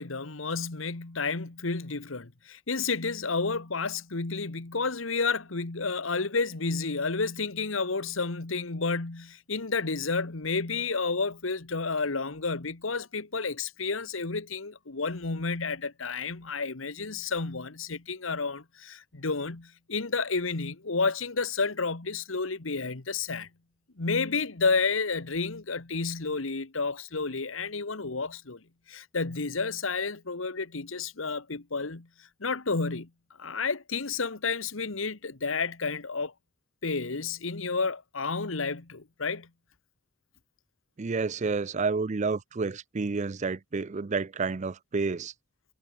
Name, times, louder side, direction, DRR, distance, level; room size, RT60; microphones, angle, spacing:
voice 1, 0.0-23.5 24.0-28.6 28.9-33.1 33.4-36.3 36.8-39.5, left 4 dB, 80° left, 1.5 m, -31 dB
voice 2, 41.0-45.3, right 4 dB, 35° right, 0.5 m, -30 dB
head